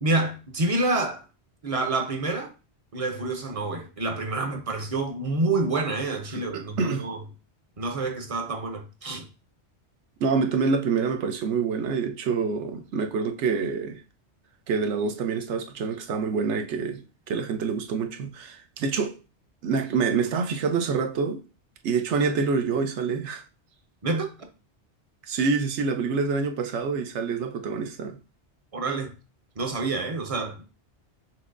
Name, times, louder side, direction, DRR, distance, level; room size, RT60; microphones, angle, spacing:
voice 1, 0.0-1.2 1.6-2.5 2.9-7.2 7.8-9.3 24.0-24.3 28.7-29.1 29.6-30.6, right 2 dB, 35° right, 0.6 m, -28 dB
voice 2, 6.3-7.0 10.2-14.0 14.7-19.1 19.6-21.4 21.8-23.4 25.3-28.2, right 5 dB, 85° right, 1.0 m, -26 dB
5.8 x 3.0 x 2.5 m
omnidirectional pair, 1.2 m